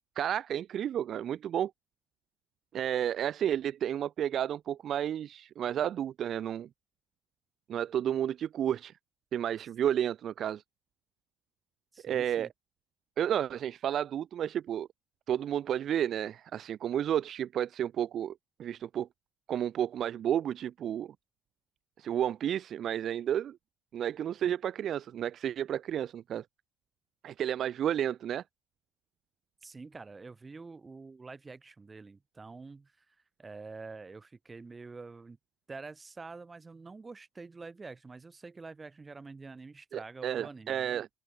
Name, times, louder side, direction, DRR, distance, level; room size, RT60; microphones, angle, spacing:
voice 1, 0.0-1.7 2.7-6.7 7.7-8.9 9.3-10.6 12.0-12.5 13.2-14.9 15.3-18.3 18.6-19.1 19.5-21.1 22.0-23.6 23.9-26.4 27.2-28.4 39.9-41.1, right 10 dB, 45° right, 0.4 m, -31 dB
voice 2, 11.9-12.5 29.6-35.4 35.7-40.9, right 4 dB, 15° right, 5.3 m, -47 dB
open air
cardioid pair, 135°, 0 cm